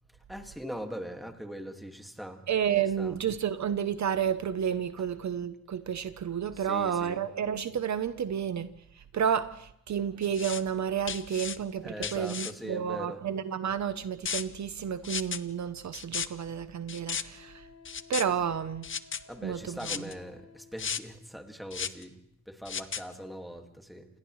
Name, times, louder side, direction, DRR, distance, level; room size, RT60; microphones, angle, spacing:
voice 1, 0.3-2.4 3.0-3.2 5.0-5.1 6.5-7.3 11.8-13.2 19.3-22.2 22.5-24.1, equal, ahead, 2.0 m, -41 dB
voice 2, 2.5-17.7 18.1-18.9 19.4-19.8, right 8 dB, 60° right, 0.8 m, -31 dB
sound 1, 10.2-10.6 11.1-11.6 12.0-12.5 14.3-14.4 15.0-15.4 15.9-16.3 16.9-17.2 17.9-18.2 18.8-19.2 19.8-20.1 20.8-21.0 21.7-22.0 22.7-23.0, left 7 dB, 40° left, 0.8 m, -34 dB
Wind instrument woodwind instrument, 17.2-21.3, left 6 dB, 80° left, 6.3 m, -55 dB
29.5 x 28.0 x 3.2 m
wide cardioid pair, 150°, 33 cm